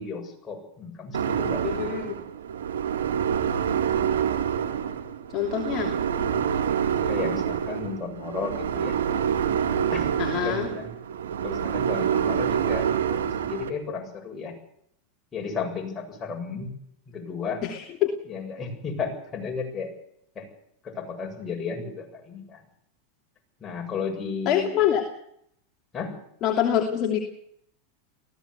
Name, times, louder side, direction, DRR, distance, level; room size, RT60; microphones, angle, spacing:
voice 1, 0.0-1.6 7.1-8.9 9.9-10.1 10.4-10.9 11.4-14.5 15.3-16.7 17.1-17.6 18.3-19.9 20.4-20.5 20.8-22.6 23.6-24.7 25.9-26.1, left 5 dB, 25° left, 1 dB, 7.9 m, -33 dB
sound 1, 1.1-13.7, right 8 dB, 85° right, 2.3 m, -27 dB
voice 2, 1.6-2.2 5.3-5.9 10.2-10.7 17.6-18.1 24.5-25.0 26.4-27.2, left 10 dB, 40° left, 3 dB, 2.9 m, -25 dB
19.0 x 16.0 x 8.4 m, 0.71 s
hypercardioid pair, 105°, 0 cm